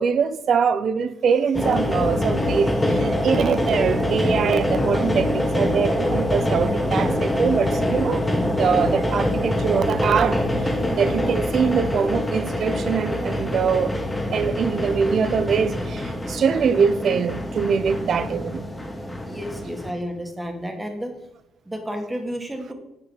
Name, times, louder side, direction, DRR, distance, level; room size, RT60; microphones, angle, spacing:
voice 1, 0.0-8.3 8.6-10.4 10.9-13.9 14.3-18.6, right 6 dB, 60° right, 0.6 m, -23 dB
sound 1, 1.5-19.9, left 1 dB, 10° left, 1.4 m, -24 dB
voice 2, 19.2-21.1 21.7-22.7, equal, 10° right, 1.9 m, -31 dB
8.4 x 4.8 x 6.4 m
cardioid pair, 90°, 0 cm